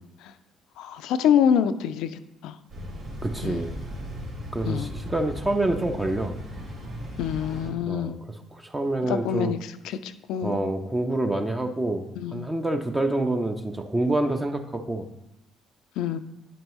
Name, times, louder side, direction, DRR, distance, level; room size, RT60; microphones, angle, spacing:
voice 1, 0.8-2.6 3.4-3.6 4.7-4.9 7.2-8.2 9.1-10.6 12.2-12.5 16.0-16.2, left 8 dB, 65° left, 12 dB, 0.4 m, -26 dB
sound 1, 2.7-7.7, equal, 65° right, 2.4 m, -37 dB
voice 2, 3.2-3.8 4.5-6.3 7.9-8.2 8.5-9.5 10.4-12.1 12.3-15.1, right 2 dB, 15° right, 5 dB, 0.6 m, -27 dB
10.5 x 4.5 x 3.1 m, 0.86 s
figure-of-eight pair, 50°, 0 cm